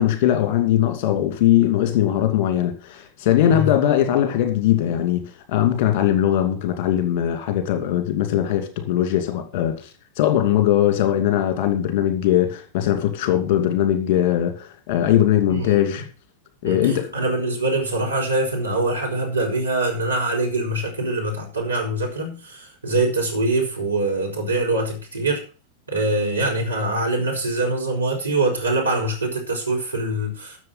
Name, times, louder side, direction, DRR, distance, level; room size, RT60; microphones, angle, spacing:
voice 1, 0.0-9.9 10.2-16.1 16.6-17.1, left 11 dB, 45° left, 2.6 m, -20 dB
voice 2, 3.4-3.7 15.5-15.9 16.6-25.4 25.9-30.6, right 2 dB, 80° right, 4.4 m, -24 dB
13.0 x 7.1 x 5.7 m
figure-of-eight pair, 90°, 0 cm